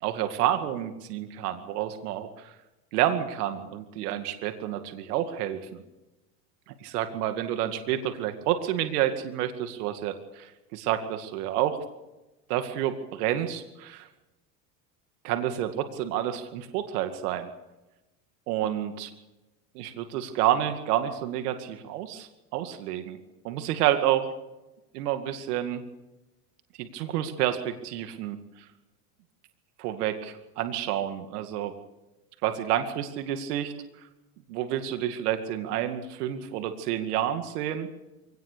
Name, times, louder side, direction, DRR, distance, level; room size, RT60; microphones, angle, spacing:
voice 1, 0.0-2.5 2.9-5.8 6.7-11.8 12.5-14.1 15.2-17.5 18.5-19.1 19.7-23.2 23.4-24.3 24.9-25.8 26.8-28.4 29.8-31.7 32.4-33.7 34.5-37.9, right 11 dB, 75° right, 8 dB, 2.3 m, -29 dB
24.0 x 18.5 x 6.8 m, 1.0 s
supercardioid pair, 115°, 46 cm